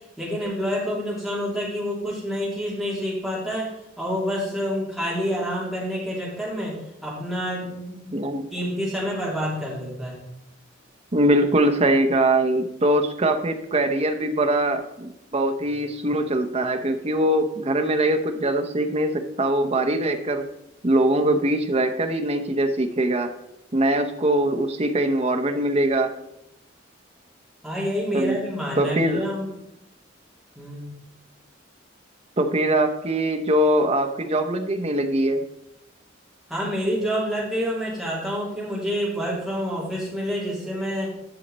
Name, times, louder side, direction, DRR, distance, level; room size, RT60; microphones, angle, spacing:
voice 1, 0.2-3.7 4.0-10.2 27.6-29.5 30.5-30.9 36.5-41.1, equal, ahead, -6 dB, 2.9 m, -28 dB
voice 2, 8.1-8.5 11.1-20.4 20.8-23.3 23.7-26.1 28.1-28.4 28.7-29.2 32.4-35.4, right 1 dB, 30° right, 6 dB, 0.8 m, -22 dB
11.0 x 6.5 x 4.1 m, 0.84 s
head